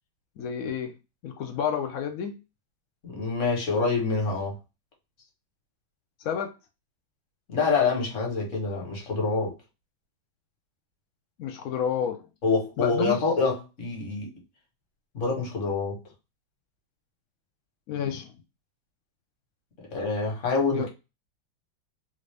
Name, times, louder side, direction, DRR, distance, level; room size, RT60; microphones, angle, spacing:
voice 1, 0.4-1.0 1.2-2.4 6.2-6.5 11.4-12.2 12.8-13.2 17.9-18.3 20.7-20.9, left 8 dB, 85° left, 0.7 m, -30 dB
voice 2, 3.0-4.6 7.5-9.6 12.4-14.3 15.1-16.0 19.8-20.9, left 4 dB, 45° left, 1.4 m, -26 dB
3.5 x 2.6 x 3.2 m
omnidirectional pair, 2.1 m